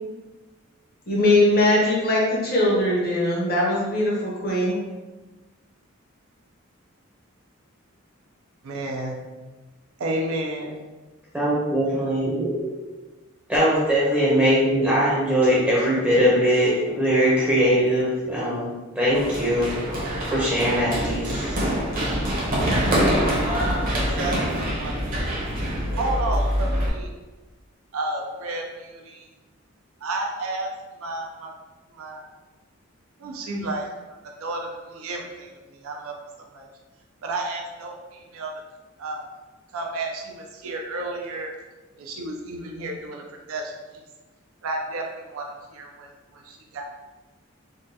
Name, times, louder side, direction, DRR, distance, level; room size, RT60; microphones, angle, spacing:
voice 1, 1.1-4.8, left 1 dB, 45° left, -4 dB, 0.8 m, -21 dB
voice 2, 8.6-9.2 10.0-10.8 23.7-24.4 24.7-25.3 26.0-27.1 27.9-29.3 30.0-30.7 31.0-31.5 31.9-32.2 33.2-33.8 34.4-35.5 35.8-36.2 36.5-36.7 37.2-38.5 39.0-39.3 39.7-41.5 42.0-44.0 44.6-46.8, right 2 dB, 90° right, 1 dB, 0.5 m, -31 dB
voice 3, 11.3-12.7 13.5-18.7 19.0-19.7 20.3-21.4, equal, 5° right, -8 dB, 0.6 m, -21 dB
Run, 19.1-26.9, equal, 40° right, 0.7 m, -25 dB
3.6 x 2.2 x 2.7 m, 1.2 s
head